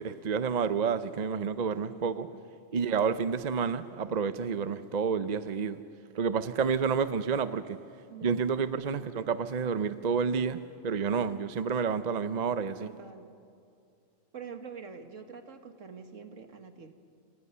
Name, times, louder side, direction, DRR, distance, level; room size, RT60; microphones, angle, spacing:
voice 1, 0.0-2.3 2.7-5.8 6.1-7.8 8.2-12.9, right 6 dB, 40° right, 12 dB, 0.6 m, -29 dB
voice 2, 1.8-2.4 8.1-8.4 12.8-13.3 14.3-16.9, right 6 dB, 65° right, 7 dB, 1.8 m, -46 dB
29.0 x 26.5 x 5.6 m, 2.5 s
omnidirectional pair, 1.4 m